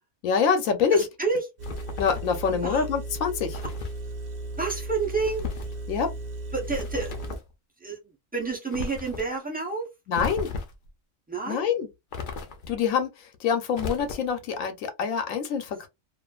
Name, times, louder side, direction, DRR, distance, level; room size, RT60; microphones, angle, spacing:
voice 1, 0.2-1.1 2.0-3.6 5.9-6.1 10.1-10.5 11.5-11.9 12.7-15.9, left 6 dB, 85° left, 1.1 m, -25 dB
voice 2, 0.9-1.4 2.6-2.9 4.6-5.4 6.5-7.2 7.8-8.0 8.3-9.9 11.3-11.8, right 4 dB, 15° right, 0.4 m, -29 dB
sound 1, 1.6-2.4 3.5-4.0 5.2-5.8 6.6-7.5 8.7-9.3 10.1-10.9 12.1-12.8 13.7-14.4, left 4 dB, 55° left, 0.6 m, -35 dB
Engine, 1.6-7.4, right 2 dB, 85° right, 0.3 m, -36 dB
2.5 x 2.5 x 2.3 m
omnidirectional pair, 1.4 m